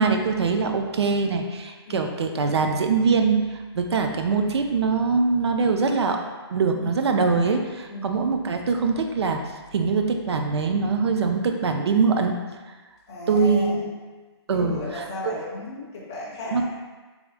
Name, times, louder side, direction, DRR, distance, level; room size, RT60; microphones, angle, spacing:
voice 1, 0.0-3.5 3.7-6.2 6.5-9.4 9.7-12.4 13.3-14.0 14.5-15.4 16.5-16.6, right 4 dB, 70° right, 4 dB, 0.4 m, -23 dB
voice 2, 1.9-2.2 6.7-7.1 7.9-8.2 13.1-13.8 14.5-16.6, left 1 dB, 10° left, -7 dB, 0.3 m, -35 dB
3.5 x 2.5 x 3.4 m, 1.3 s
hypercardioid pair, 175°, 14 cm